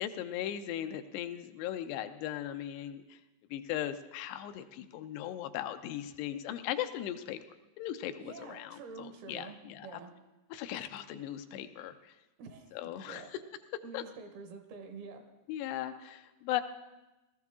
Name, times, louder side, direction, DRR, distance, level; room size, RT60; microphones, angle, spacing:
voice 1, 0.0-3.2 3.5-7.4 7.8-9.9 10.5-12.1 12.7-13.2 13.9-14.0 15.5-16.6, left 11 dB, 85° left, 9 dB, 2.7 m, -38 dB
voice 2, 8.2-10.1 12.4-12.8 13.0-13.3 13.8-15.2, right 4 dB, 70° right, 4 dB, 3.1 m, -47 dB
18.0 x 13.5 x 3.6 m, 1.0 s
omnidirectional pair, 4.8 m